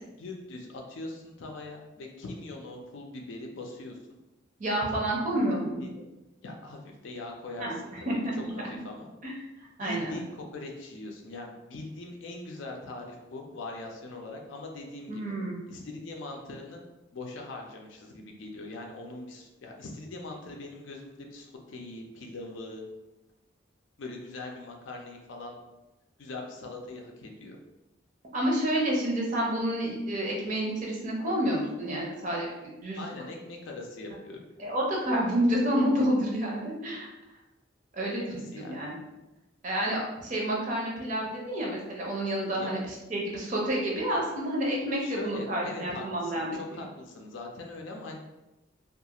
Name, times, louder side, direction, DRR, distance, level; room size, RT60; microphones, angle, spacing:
voice 1, 0.2-4.0 5.5-5.9 6.4-7.9 8.7-9.1 9.8-15.2 15.7-16.8 17.1-22.8 24.0-25.6 26.2-27.6 33.0-34.4 38.3-38.8 42.6-42.8 45.0-48.2, left 2 dB, 80° left, 1 dB, 0.4 m, -41 dB
voice 2, 4.6-5.9 7.6-8.5 9.2-9.3 9.8-10.2 15.1-15.6 28.3-33.0 34.6-37.1 37.9-38.9 39.6-46.8, right 1 dB, 40° right, -2 dB, 0.5 m, -29 dB
2.4 x 2.3 x 2.8 m, 1.0 s
head